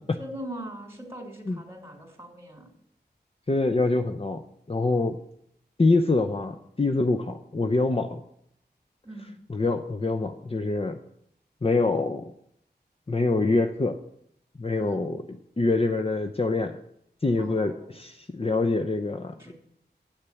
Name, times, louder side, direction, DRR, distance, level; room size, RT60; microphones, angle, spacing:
voice 1, 0.2-2.7 9.0-9.4 14.8-15.0 17.4-18.0 19.4-19.5, right 1 dB, 15° right, 2 dB, 3.1 m, -41 dB
voice 2, 3.5-4.4 4.7-5.2 5.8-8.2 9.5-11.0 11.6-12.2 13.1-14.0 14.6-16.8 17.2-19.5, left 3 dB, 35° left, 6 dB, 0.7 m, -25 dB
8.2 x 6.7 x 8.4 m, 0.72 s
wide cardioid pair, 55°, 18 cm